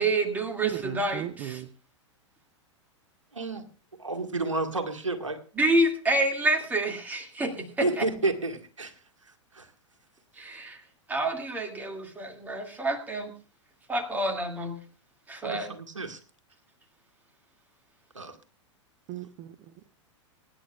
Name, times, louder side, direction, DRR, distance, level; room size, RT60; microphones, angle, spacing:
voice 1, 0.0-1.6 5.6-8.1 10.4-10.8 11.1-13.3 13.9-14.8 15.3-15.7, right 2 dB, 10° right, 3 dB, 2.2 m, -28 dB
voice 2, 0.6-1.7 19.1-19.9, right 12 dB, 35° right, 12 dB, 0.8 m, -37 dB
voice 3, 3.3-3.6 4.0-5.4 7.8-8.9 9.3-9.7 15.4-16.2 18.1-18.4, right 3 dB, 80° right, 5 dB, 1.7 m, -31 dB
24.5 x 10.5 x 2.4 m, 0.37 s
figure-of-eight pair, 100°, 16 cm